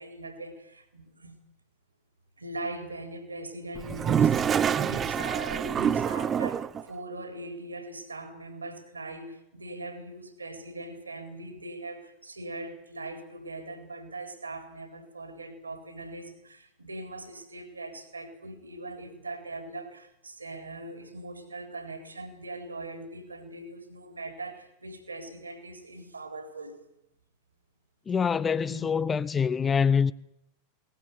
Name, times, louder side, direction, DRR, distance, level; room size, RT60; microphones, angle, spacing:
voice 1, 0.0-1.4 2.4-26.8 28.7-28.9, right 2 dB, 80° right, 4.1 m, -41 dB
Toilet flush, 3.8-6.8, right 8 dB, 25° right, 1.1 m, -26 dB
voice 2, 28.1-30.1, left 6 dB, 20° left, 0.8 m, -25 dB
21.5 x 19.0 x 9.7 m
figure-of-eight pair, 90°, 0 cm